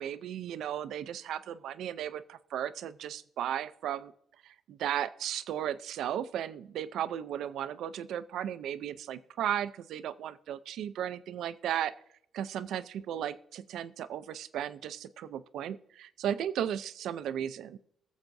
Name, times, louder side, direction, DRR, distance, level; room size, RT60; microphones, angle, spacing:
voice 1, 0.0-4.1 4.4-11.9 12.3-17.8, right 10 dB, 80° right, 14 dB, 0.5 m, -35 dB
21.0 x 7.2 x 2.6 m, 0.70 s
cardioid pair, 90°, 0 cm